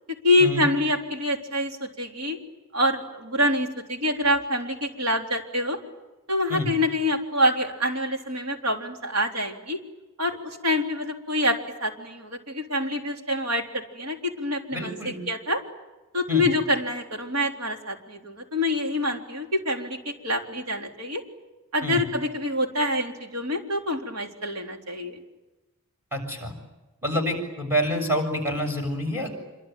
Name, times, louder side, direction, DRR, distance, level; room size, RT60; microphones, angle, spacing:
voice 1, 0.2-2.4 2.7-5.8 6.3-9.8 10.2-15.0 15.3-15.6 16.1-21.2 21.7-25.2, left 1 dB, 80° right, 2 dB, 3.8 m, -26 dB
voice 2, 14.7-15.2 16.3-16.5 21.8-22.0 26.1-26.5 27.0-29.3, equal, 10° right, 1 dB, 7.0 m, -27 dB
27.0 x 24.0 x 9.2 m, 1.1 s
head